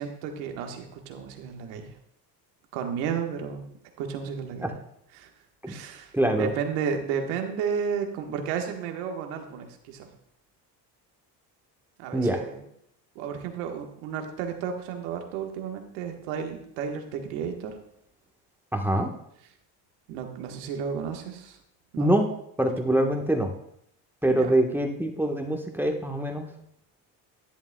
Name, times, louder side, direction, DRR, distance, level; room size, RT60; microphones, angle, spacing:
voice 1, 0.0-1.9 2.7-3.7 4.0-4.7 5.1-5.3 5.7-10.1 12.0-12.6 13.1-17.7 18.9-19.0 20.1-21.6 21.9-22.1 24.3-24.5, right 7 dB, 75° right, 4 dB, 1.5 m, -33 dB
voice 2, 6.1-6.5 12.1-12.4 18.7-19.1 22.0-22.3 22.6-23.5 24.2-26.5, right 1 dB, 5° right, 2 dB, 1.2 m, -24 dB
11.0 x 10.5 x 2.3 m, 0.72 s
hypercardioid pair, 75°, 49 cm